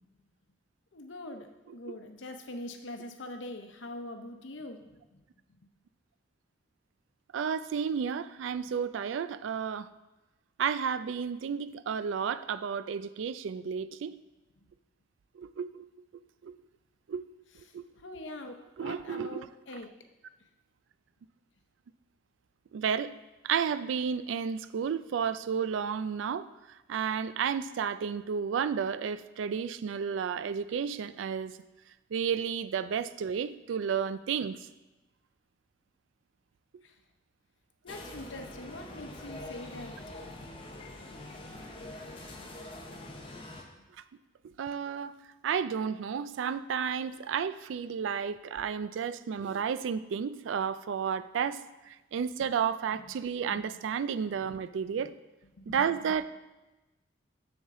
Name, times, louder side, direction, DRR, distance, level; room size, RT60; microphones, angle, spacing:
voice 1, 0.9-1.5 1.7-4.8 18.0-19.9 36.8-36.9 37.8-40.0 52.9-53.1 53.5-53.7 55.6-55.8, left 1 dB, 80° left, 6 dB, 0.8 m, -43 dB
voice 2, 7.3-9.9 10.6-14.1 15.4-15.9 16.4-16.5 17.1-17.2 17.7-17.8 18.8-19.5 22.7-23.1 23.4-26.5 26.9-31.6 32.1-34.6 44.6-45.1 45.4-51.6 52.1-55.1 55.7-56.2, right 7 dB, 85° right, 15 dB, 0.3 m, -32 dB
sound 1, 37.9-43.6, left 2 dB, 30° left, 0.8 m, -44 dB
7.1 x 7.1 x 3.7 m, 1.1 s
head